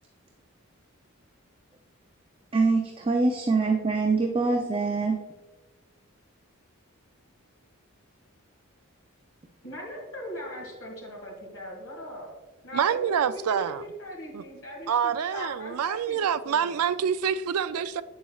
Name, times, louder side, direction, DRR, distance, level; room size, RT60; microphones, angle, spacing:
voice 1, 2.5-5.2, right 3 dB, 25° right, 0.4 m, -24 dB
voice 2, 9.6-12.3 12.6-16.2 16.4-16.8, equal, 80° left, 2.3 m, -40 dB
voice 3, 12.7-13.8 14.3-14.4 14.9-18.0, right 8 dB, 85° right, 0.4 m, -26 dB
8.3 x 7.1 x 2.4 m
head